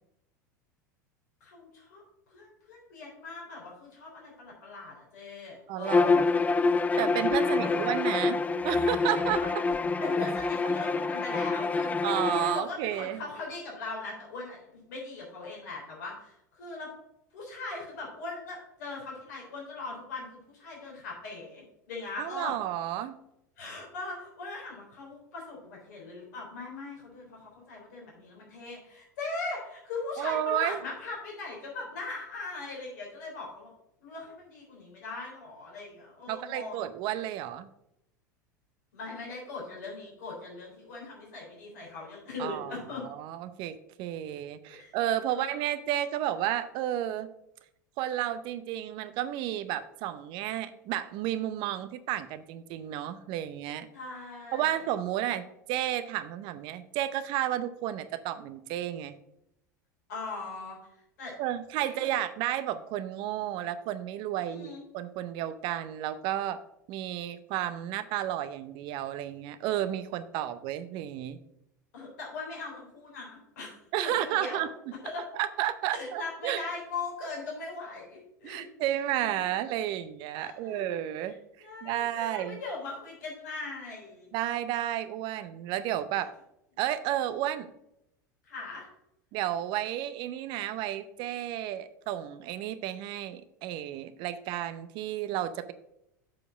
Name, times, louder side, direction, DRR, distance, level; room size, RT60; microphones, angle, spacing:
voice 1, 1.4-2.0 2.3-6.4 7.4-7.8 9.4-9.5 10.0-12.1 12.5-16.9 17.3-22.6 23.6-33.7 34.0-36.8 38.9-43.0 44.8-45.0 45.2-45.4 53.9-54.7 60.1-60.8 61.2-61.3 61.8-62.2 64.4-64.8 71.9-74.6 75.0-75.3 75.9-78.7 79.2-79.5 80.3-80.9 81.6-84.3 88.4-88.9, left 3 dB, 70° left, -2 dB, 3.4 m, -40 dB
voice 2, 5.7-6.2 7.0-9.6 12.0-13.3 22.2-23.2 30.2-30.8 36.3-37.7 42.4-47.3 48.0-53.9 54.5-59.1 61.4-66.6 66.9-71.4 73.9-74.7 75.3-76.6 78.4-81.4 81.8-82.6 84.3-86.3 86.8-87.7 89.3-95.7, right 12 dB, 55° right, 13 dB, 0.7 m, -32 dB
Bowed string instrument, 5.8-12.6, left 4 dB, 15° left, 0.4 m, -26 dB
7.4 x 4.8 x 6.1 m, 0.81 s
hypercardioid pair, 80°, 10 cm